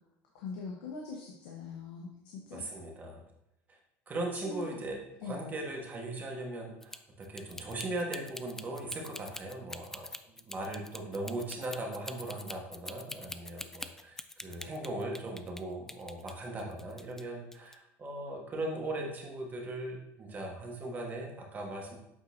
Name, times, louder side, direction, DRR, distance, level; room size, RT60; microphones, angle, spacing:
voice 1, 0.3-2.6 4.3-4.7 5.2-5.4, left 4 dB, 85° left, -2 dB, 1.1 m, -42 dB
voice 2, 2.5-3.2 3.7-3.8 4.1-21.9, right 2 dB, 30° right, 0 dB, 1.5 m, -39 dB
sound 1, 6.8-15.6 15.9-17.2 17.5-17.7, left 2 dB, 5° left, 0.3 m, -44 dB
8.5 x 4.2 x 2.8 m, 0.81 s
supercardioid pair, 115°, 6 cm